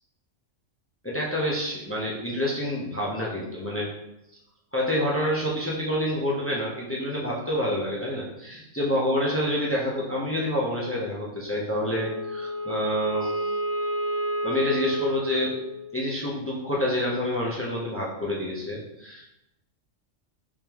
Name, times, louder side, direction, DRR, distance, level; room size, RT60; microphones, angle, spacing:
voice 1, 1.0-3.9 4.7-13.5 14.4-15.5 15.9-19.3, left 1 dB, 20° left, -5 dB, 0.3 m, -28 dB
Wind instrument woodwind instrument, 11.7-16.1, equal, 75° right, 1.0 m, -30 dB
3.6 x 3.2 x 2.9 m, 0.90 s
omnidirectional pair, 1.3 m